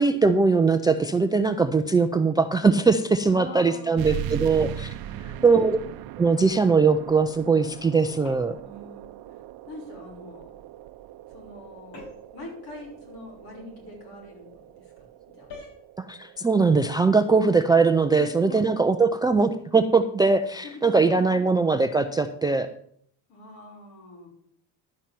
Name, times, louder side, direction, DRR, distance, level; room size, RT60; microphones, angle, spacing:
voice 1, 0.0-4.9 5.3-5.8 6.2-8.6 16.0-22.7, right 4 dB, 10° right, 10 dB, 0.3 m, -21 dB
voice 2, 3.3-4.7 5.1-5.9 8.6-9.4 9.7-10.5 11.3-12.1 12.3-15.0 15.3-15.5 18.1-18.7 20.6-21.5 23.3-24.3, left 2 dB, 60° left, -1 dB, 5.9 m, -44 dB
sound 1, 4.0-19.1, right 11 dB, 60° right, 0.7 m, -40 dB
sound 2, 8.2-8.7 11.9-12.4 15.5-15.8, left 2 dB, 80° left, 5.2 m, -43 dB
11.5 x 5.5 x 7.5 m, 0.64 s
cardioid pair, 145°, 42 cm